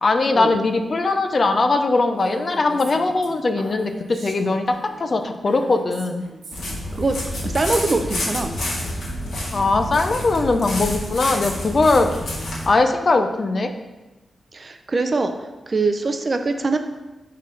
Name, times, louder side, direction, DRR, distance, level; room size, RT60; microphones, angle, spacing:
voice 1, 0.0-6.2 9.5-12.1 12.7-13.7, left 3 dB, 35° left, 7 dB, 0.4 m, -20 dB
Female speech woman speaking, 2.2-6.8, right 3 dB, 65° right, 0.9 m, -40 dB
sound 1, 6.5-12.7, left 1 dB, 75° left, 1.8 m, -28 dB
voice 2, 7.4-8.5 14.5-16.8, right 3 dB, 30° right, 7 dB, 0.4 m, -23 dB
9.5 x 3.8 x 3.2 m, 1.1 s
wide cardioid pair, 150°, 0 cm